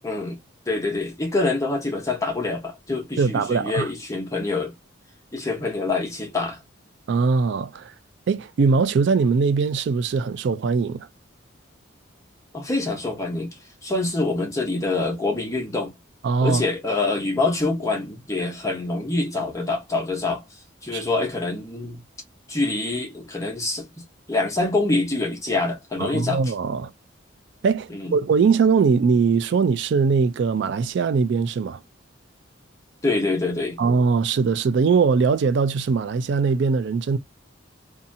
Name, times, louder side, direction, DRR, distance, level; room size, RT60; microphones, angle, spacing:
voice 1, 0.0-0.4 0.7-4.7 5.3-6.6 12.5-13.5 13.8-15.9 16.4-20.4 20.8-22.0 22.5-23.9 24.3-26.4 27.9-28.1 33.0-33.8, left 2 dB, 15° left, 1.0 m, -25 dB
voice 2, 3.2-3.9 7.1-7.9 8.3-11.1 16.2-16.6 20.9-21.0 26.0-26.9 27.6-31.8 33.8-37.2, right 5 dB, 60° right, 0.3 m, -21 dB
2.7 x 2.4 x 2.6 m
head